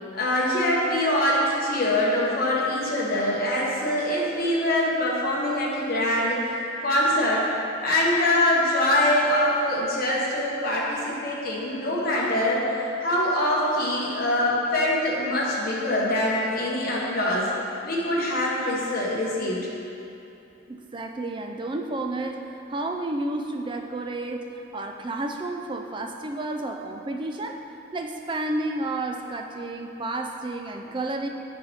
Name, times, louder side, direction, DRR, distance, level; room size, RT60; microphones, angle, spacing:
voice 1, 0.1-6.5 6.8-7.4 7.8-12.6 13.0-17.5 17.8-19.7, left 1 dB, 45° left, -5 dB, 1.2 m, -24 dB
voice 2, 20.7-27.6 27.9-31.3, right 2 dB, 25° right, 4 dB, 0.3 m, -31 dB
7.8 x 5.3 x 3.4 m, 2.8 s
head